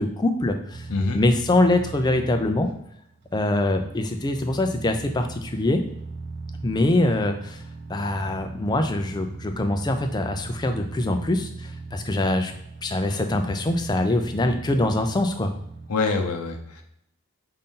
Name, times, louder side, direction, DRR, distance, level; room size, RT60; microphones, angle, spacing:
voice 1, 0.0-0.9 1.1-2.7 3.3-5.8 6.6-7.6 7.9-12.5 12.8-15.5, left 2 dB, 20° left, 5 dB, 0.4 m, -23 dB
sound 1, 0.7-15.9, right 3 dB, 50° right, 0.5 m, -39 dB
voice 2, 0.9-1.2 15.9-16.8, left 3 dB, 85° left, 3 dB, 0.7 m, -25 dB
5.4 x 2.6 x 3.7 m, 0.76 s
head